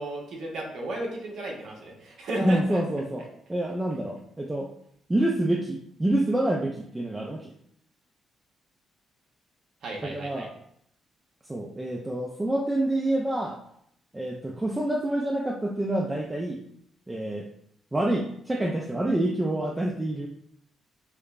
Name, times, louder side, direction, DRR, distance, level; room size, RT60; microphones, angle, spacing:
voice 1, 0.0-2.8 9.8-10.5, right 2 dB, 65° right, -1 dB, 0.9 m, -34 dB
voice 2, 2.4-4.7 5.1-7.5 10.0-10.5 11.5-13.6 14.1-16.6 17.1-17.5 17.9-20.3, right 1 dB, 15° right, 0 dB, 0.4 m, -27 dB
5.0 x 2.1 x 2.4 m, 0.71 s
cardioid pair, 90°, 0 cm